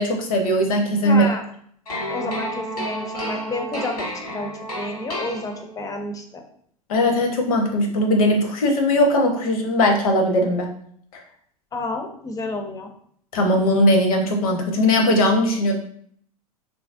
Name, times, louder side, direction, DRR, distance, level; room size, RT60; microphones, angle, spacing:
voice 1, 0.0-1.2 6.9-10.7 11.1-11.2 13.3-15.8, left 1 dB, 65° left, 3 dB, 0.8 m, -19 dB
voice 2, 1.0-1.4 2.1-6.4 11.7-12.9, left 2 dB, 20° left, 5 dB, 0.5 m, -30 dB
sound 1, 1.9-6.0, right 1 dB, 85° left, 1.3 m, -31 dB
3.0 x 2.6 x 2.5 m, 0.63 s
hypercardioid pair, 95°, 19 cm